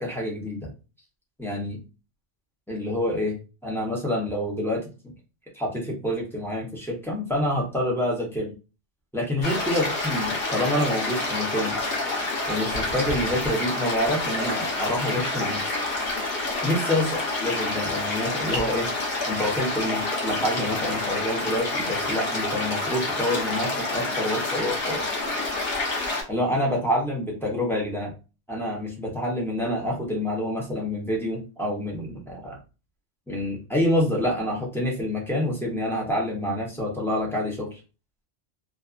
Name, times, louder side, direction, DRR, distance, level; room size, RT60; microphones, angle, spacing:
voice 1, 0.0-0.7 1.4-1.8 2.7-5.1 5.5-8.5 9.1-11.7 12.5-15.6 16.6-17.1 17.4-18.9 19.2-25.0 26.3-28.1 28.5-32.6 33.3-37.8, left 1 dB, 5° left, -4 dB, 0.6 m, -27 dB
sound 1, 9.4-26.2, left 2 dB, 55° left, 1.0 m, -28 dB
2.5 x 2.4 x 2.3 m, 0.31 s
omnidirectional pair, 1.2 m